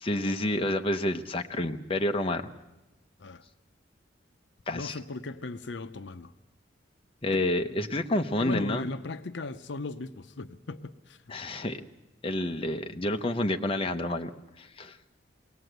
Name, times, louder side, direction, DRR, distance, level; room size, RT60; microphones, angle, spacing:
voice 1, 0.0-2.5 4.7-5.0 7.2-8.9 11.3-11.8 12.2-14.3 14.6-15.0, left 1 dB, 30° left, 0.8 m, -29 dB
voice 2, 4.7-6.3 8.4-11.3, left 3 dB, 65° left, 0.7 m, -37 dB
22.5 x 18.5 x 8.0 m
head